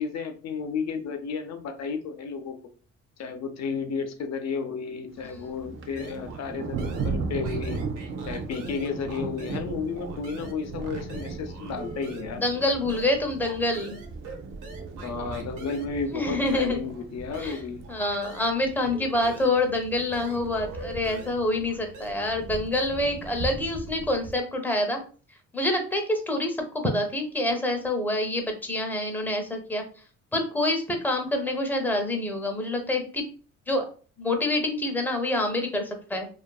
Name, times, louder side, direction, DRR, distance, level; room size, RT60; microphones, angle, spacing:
voice 1, 0.0-2.6 3.2-7.8 8.3-12.4 15.0-17.8, left 5 dB, 60° left, 7 dB, 0.6 m, -32 dB
Thunder, 5.1-24.4, right 4 dB, 45° right, 0.4 m, -37 dB
sound 1, 6.0-6.5 6.8-9.7 10.0-18.6 18.9-22.1, right 3 dB, 90° right, 0.7 m, -45 dB
voice 2, 12.4-14.0 16.1-16.8 17.4-17.6 17.9-25.0 25.5-29.8 30.3-33.2 33.7-33.8 34.2-36.3, left 1 dB, 5° left, 4 dB, 0.6 m, -26 dB
2.6 x 2.4 x 2.3 m, 0.39 s
cardioid pair, 90°, 30 cm